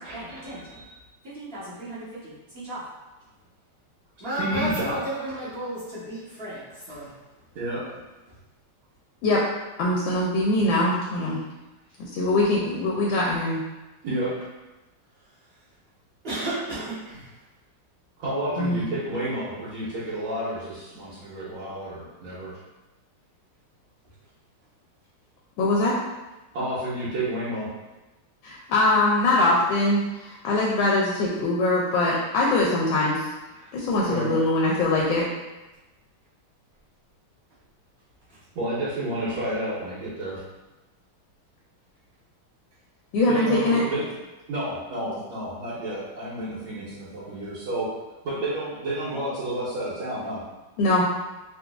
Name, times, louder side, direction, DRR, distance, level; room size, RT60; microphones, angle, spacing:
voice 1, 0.0-2.3 2.6-2.8 4.2-7.1 15.2-15.3 16.2-17.4 24.0-24.1 33.7-33.9 38.3-38.4 39.3-39.4, right 1 dB, 40° right, -11 dB, 1.0 m, -34 dB
voice 2, 4.4-5.0 7.5-7.8 14.0-14.5 18.2-22.5 26.5-27.7 33.6-33.7 34.1-34.3 38.5-40.4 43.3-44.1 44.5-47.9 48.2-50.4, right 1 dB, 70° right, -11 dB, 1.6 m, -30 dB
voice 3, 9.8-11.4 12.1-13.6 18.6-18.9 25.6-25.9 28.4-33.3 33.7-35.2 43.1-43.8 50.8-51.1, left 2 dB, 75° left, -4 dB, 1.2 m, -22 dB
3.9 x 2.5 x 2.3 m, 1.1 s
omnidirectional pair, 2.4 m